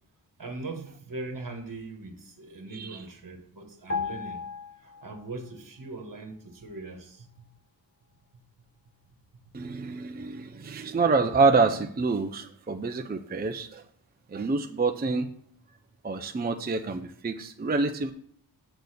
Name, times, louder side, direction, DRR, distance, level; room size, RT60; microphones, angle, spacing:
voice 1, 0.4-4.4 4.8-7.4 9.8-10.0, right 2 dB, 45° right, 1.5 m, -40 dB
sound 1, 3.9-5.5 5.8-6.0, left 5 dB, 30° left, 1.1 m, -35 dB
voice 2, 9.5-13.8 14.3-15.3 16.0-18.1, right 4 dB, 20° right, 0.5 m, -27 dB
6.9 x 4.0 x 6.6 m
cardioid pair, 50°, 46 cm